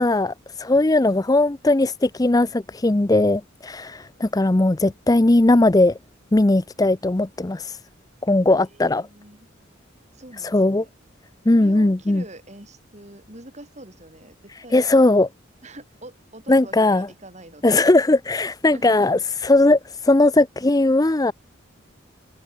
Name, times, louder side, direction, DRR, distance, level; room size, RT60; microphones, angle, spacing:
voice 1, 0.0-6.0 6.3-7.8 8.2-9.0 10.5-10.8 11.5-12.2 14.7-15.3 16.5-17.1 17.6-21.3, left 2 dB, 20° left, 0.5 m, -18 dB
voice 2, 8.7-9.5 10.1-10.9 11.5-14.9 15.6-17.9 18.7-19.0, right 1 dB, 35° right, 5.5 m, -44 dB
head